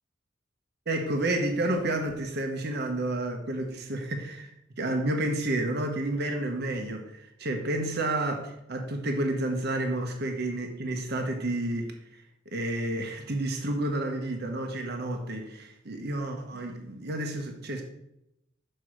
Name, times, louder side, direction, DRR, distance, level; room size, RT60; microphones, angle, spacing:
voice 1, 0.9-17.8, right 1 dB, 55° right, 3 dB, 1.1 m, -30 dB
6.4 x 4.5 x 6.3 m, 0.84 s
head